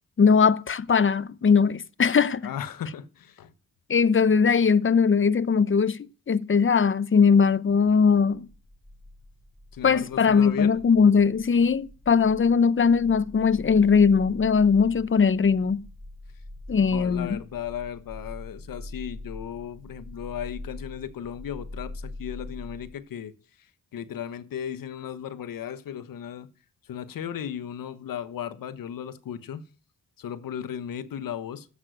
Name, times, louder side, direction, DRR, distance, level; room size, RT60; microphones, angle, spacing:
voice 1, 0.2-2.5 3.9-8.5 9.8-15.8 16.7-17.4, left 6 dB, 35° left, 0.8 m, -20 dB
voice 2, 2.4-3.5 9.7-10.7 16.9-23.3 23.9-26.5 26.9-29.7 30.2-31.7, left 9 dB, 80° left, 1.2 m, -36 dB
sound 1, 8.3-23.0, left 2 dB, 10° left, 2.0 m, -43 dB
13.0 x 8.5 x 7.8 m
cardioid pair, 70°, 33 cm